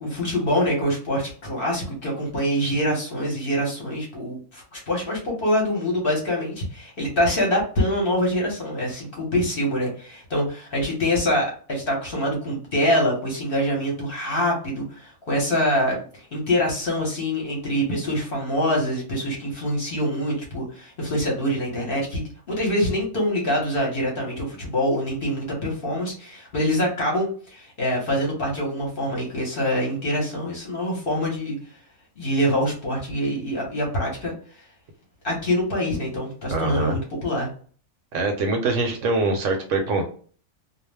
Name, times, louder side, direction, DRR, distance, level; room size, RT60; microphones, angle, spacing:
voice 1, 0.0-31.6 32.2-34.3 35.2-37.5, equal, 45° left, -1 dB, 0.9 m, -25 dB
voice 2, 36.5-37.0 38.1-40.0, right 3 dB, 70° right, 4 dB, 0.9 m, -23 dB
2.3 x 2.0 x 3.2 m, 0.42 s
omnidirectional pair, 1.5 m